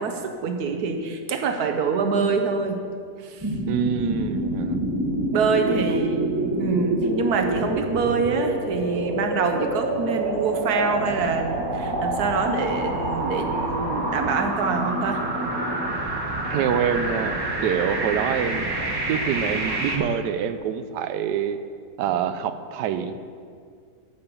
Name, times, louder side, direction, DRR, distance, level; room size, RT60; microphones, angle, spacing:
voice 1, 0.0-2.8 3.2-3.5 5.3-15.2, right 5 dB, 70° right, 5 dB, 1.4 m, -25 dB
sound 1, 3.4-20.0, right 1 dB, 15° right, 1.0 m, -27 dB
voice 2, 3.7-4.8 5.7-6.1 16.5-18.8 19.1-21.6 22.0-23.2, right 8 dB, 85° right, 10 dB, 1.2 m, -26 dB
10.5 x 5.6 x 6.9 m, 2.2 s
omnidirectional pair, 1.8 m